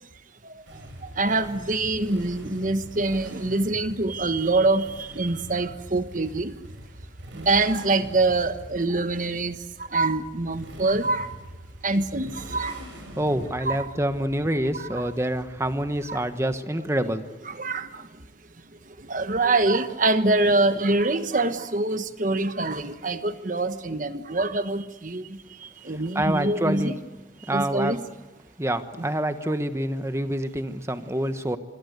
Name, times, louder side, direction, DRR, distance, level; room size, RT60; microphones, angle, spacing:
Motorcycle, 0.7-16.4, equal, 80° right, 6.8 m, -43 dB
voice 1, 1.2-6.5 7.3-9.6 9.9-11.3 11.8-12.8 13.6-13.9 14.7-15.1 16.1-16.3 17.0-17.1 17.4-18.1 19.1-25.4 25.8-27.0 27.5-28.0 29.0-29.1, right 2 dB, 45° right, 10 dB, 1.3 m, -25 dB
voice 2, 13.1-17.2 26.1-26.9 27.5-28.0 28.6-31.6, right 1 dB, 15° right, 9 dB, 1.2 m, -26 dB
26.0 x 25.5 x 8.1 m, 1.1 s
head